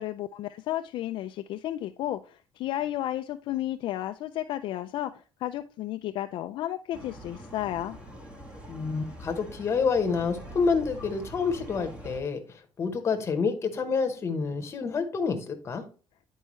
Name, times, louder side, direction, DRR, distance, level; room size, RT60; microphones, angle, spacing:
voice 1, 0.0-8.0, left 13 dB, 60° left, 7 dB, 0.3 m, -33 dB
sound 1, 6.9-12.2, equal, 10° right, 1.2 m, -44 dB
voice 2, 8.7-15.8, left 5 dB, 30° left, 6 dB, 1.0 m, -28 dB
9.9 x 4.6 x 3.1 m, 0.36 s
cardioid pair, 170°, 9 cm